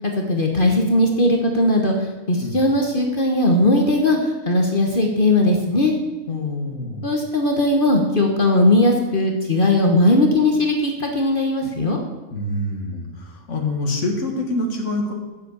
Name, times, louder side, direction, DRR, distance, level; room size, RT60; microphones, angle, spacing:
voice 1, 0.0-1.9 2.3-4.2 4.5-5.9 7.0-12.0, left 1 dB, 40° left, 2 dB, 1.3 m, -18 dB
voice 2, 6.3-7.0 12.3-15.1, left 2 dB, 55° left, 2 dB, 2.1 m, -26 dB
8.1 x 7.5 x 8.3 m, 1.2 s
omnidirectional pair, 1.5 m